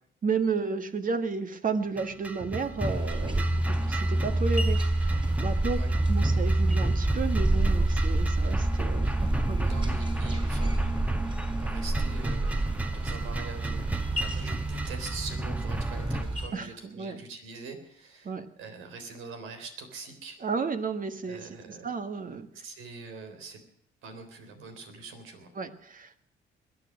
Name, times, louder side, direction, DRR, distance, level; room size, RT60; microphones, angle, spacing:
voice 1, 0.2-5.8 6.1-9.7 16.5-17.2 18.2-18.5 20.4-22.5 25.5-26.2, right 5 dB, 45° right, 9 dB, 1.6 m, -32 dB
sound 1, 2.0-16.2, right 2 dB, 5° right, 1.3 m, -34 dB
sound 2, 2.8-16.5, right 1 dB, 25° right, 4.5 m, -27 dB
voice 2, 9.6-11.0 11.6-18.3 18.6-20.4 21.3-21.9 22.5-23.6 24.0-25.5, right 4 dB, 90° right, 7 dB, 3.7 m, -43 dB
21.5 x 9.8 x 6.3 m, 0.68 s
cardioid pair, 90°, 20 cm